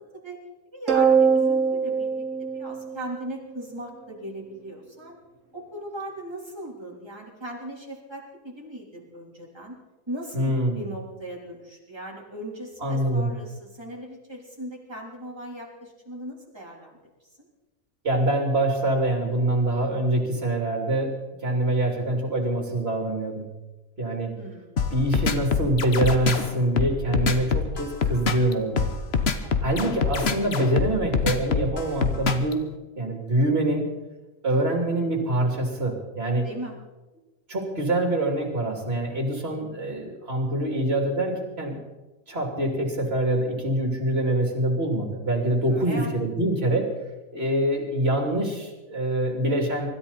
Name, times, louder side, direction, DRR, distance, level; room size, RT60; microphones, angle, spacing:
voice 1, 0.7-5.2 5.5-9.8 10.1-17.0 24.4-24.8 29.4-29.6 36.4-36.8 45.7-46.1, right 1 dB, 15° right, -3 dB, 3.8 m, -38 dB
sound 1, 0.9-3.5, right 6 dB, 60° right, 1.7 m, -22 dB
voice 2, 10.3-10.8 12.8-13.3 18.0-21.1 21.4-23.5 24.0-24.4 24.9-28.9 29.6-32.6 33.0-33.9 34.4-36.5 37.5-41.8 42.3-46.9 47.3-49.9, right 1 dB, 45° right, 2 dB, 3.4 m, -25 dB
sound 2, 24.8-32.5, left 5 dB, 50° left, 1.3 m, -24 dB
25.0 x 13.5 x 4.3 m, 1.1 s
omnidirectional pair, 1.5 m